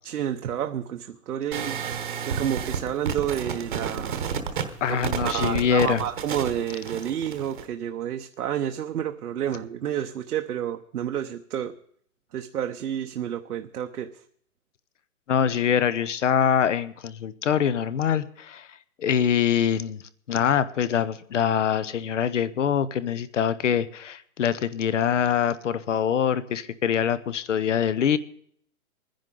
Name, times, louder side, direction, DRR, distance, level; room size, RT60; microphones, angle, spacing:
voice 1, 0.0-1.8 2.3-4.3 4.9-11.8 12.3-14.1, right 10 dB, 80° right, 5 dB, 0.9 m, -30 dB
sound 1, 1.5-7.7, right 7 dB, 35° right, 1.1 m, -31 dB
voice 2, 4.8-6.0 15.3-18.7 19.0-20.0 20.3-28.2, left 8 dB, 55° left, 16 dB, 0.8 m, -24 dB
24.0 x 10.5 x 3.8 m, 0.63 s
hypercardioid pair, 180°, 44 cm